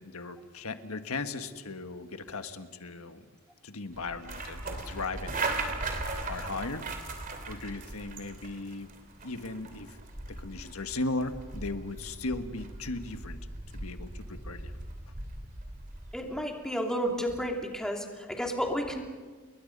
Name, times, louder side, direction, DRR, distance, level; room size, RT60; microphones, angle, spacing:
voice 1, 0.0-3.2 3.6-5.7 6.3-6.9 7.4-8.9 9.2-10.0 10.3-13.4 13.7-14.8, left 3 dB, 80° left, 8 dB, 1.6 m, -37 dB
sound 1, 3.9-16.2, right 3 dB, 40° right, 3.0 m, -38 dB
voice 2, 16.1-19.0, equal, 5° left, 1 dB, 2.9 m, -32 dB
29.5 x 22.0 x 5.4 m, 1.4 s
head